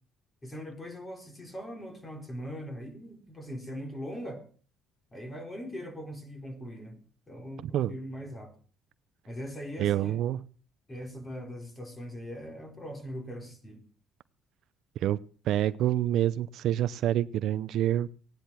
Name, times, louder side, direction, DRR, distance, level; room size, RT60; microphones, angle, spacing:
voice 1, 0.4-4.4 5.1-8.5 9.3-10.2 10.9-13.8, equal, 20° left, 4.2 m, -41 dB
voice 2, 9.8-10.4 15.0-15.2 15.5-18.1, right 12 dB, 65° right, 0.6 m, -27 dB
16.5 x 10.5 x 6.0 m
cardioid pair, 125°, 0 cm